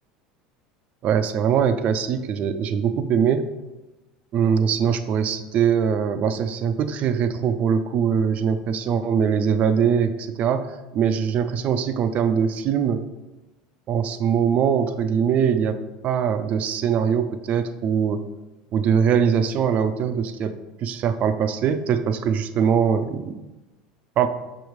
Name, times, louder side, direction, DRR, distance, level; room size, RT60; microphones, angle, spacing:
voice 1, 1.0-3.5 4.3-10.7 10.9-13.0 13.9-15.8 16.0-18.2 18.7-23.4 24.2-24.3, right 7 dB, 45° right, 10 dB, 0.5 m, -22 dB
6.0 x 3.1 x 5.0 m, 1.1 s
hypercardioid pair, 95°, 3 cm